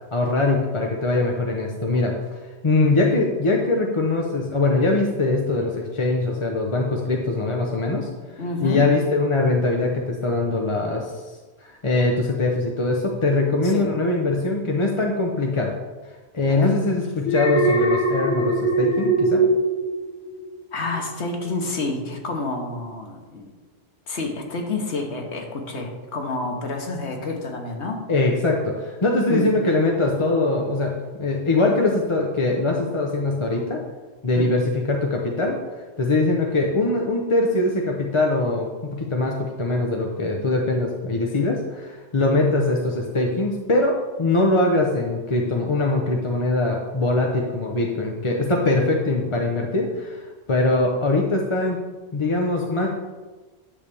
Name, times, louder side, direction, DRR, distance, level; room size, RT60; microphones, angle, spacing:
voice 1, 0.1-2.4 2.6-8.1 8.6-11.1 11.6-15.7 16.3-19.4 28.1-30.9 31.2-33.8 34.2-35.6 36.0-51.8 52.1-52.9, left 2 dB, 30° left, 0 dB, 0.8 m, -22 dB
voice 2, 8.4-8.8 13.6-13.9 16.4-16.8 20.7-23.5 24.1-28.0 29.3-29.5 34.3-34.5, left 3 dB, 90° left, 2 dB, 1.5 m, -29 dB
Alarm, 17.2-20.6 20.9-21.3, right 2 dB, 70° left, 1.5 m, -22 dB
10.0 x 3.4 x 6.8 m, 1.3 s
omnidirectional pair, 1.1 m